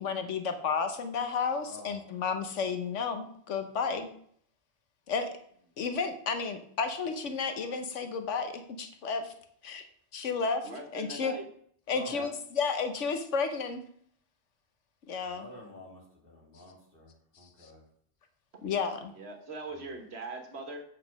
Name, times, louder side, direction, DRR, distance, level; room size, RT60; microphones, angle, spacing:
voice 1, 0.0-4.1 5.1-5.3 5.8-9.3 9.6-9.8 10.1-11.3 11.9-13.8 15.1-15.5 17.6-17.7 18.6-19.1, left 5 dB, 80° left, 7 dB, 1.2 m, -32 dB
voice 2, 1.6-2.0 11.9-12.2 15.3-17.8 19.7-19.9, left 2 dB, 50° left, -2 dB, 3.1 m, -49 dB
voice 3, 10.6-11.5 12.1-12.3 19.1-20.8, right 2 dB, 60° right, 4 dB, 1.5 m, -41 dB
8.1 x 6.3 x 5.1 m, 0.62 s
omnidirectional pair, 1.2 m